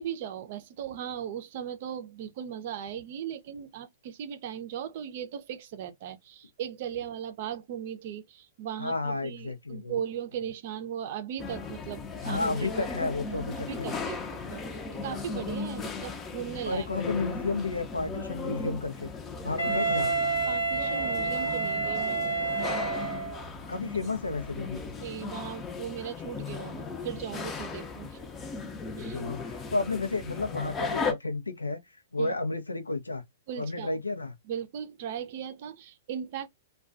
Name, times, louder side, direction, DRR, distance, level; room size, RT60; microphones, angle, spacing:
voice 1, 0.0-12.7 13.6-14.2 14.5-16.9 20.5-22.2 25.0-28.2 29.0-29.2 32.2-32.3 33.5-33.9 34.4-36.5, right 9 dB, 50° right, 0.5 m, -38 dB
voice 2, 8.8-10.0 12.2-14.0 16.6-19.1 19.4-20.1 23.7-24.9 29.0-31.8 32.1-33.2 33.6-34.3, left 3 dB, 90° left, 0.5 m, -32 dB
sound 1, 11.4-31.1, left 4 dB, 20° left, 0.6 m, -37 dB
Wind instrument woodwind instrument, 19.6-23.4, right 4 dB, 75° left, 1.0 m, -29 dB
2.3 x 2.2 x 2.4 m
figure-of-eight pair, 110°, 0 cm